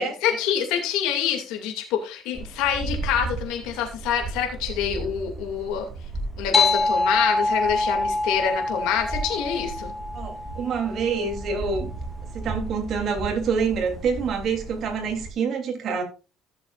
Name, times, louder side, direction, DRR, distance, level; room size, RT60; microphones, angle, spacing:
voice 1, 0.0-5.9 6.4-9.9, left 8 dB, 85° left, 2.4 m, -26 dB
sound 1, 2.3-15.3, right 3 dB, 15° right, 3.4 m, -36 dB
sound 2, 6.5-11.5, left 3 dB, 25° left, 2.2 m, -25 dB
voice 2, 10.1-11.9 12.3-16.0, right 5 dB, 50° right, 3.2 m, -26 dB
15.0 x 7.3 x 2.5 m
cardioid pair, 115°, 0 cm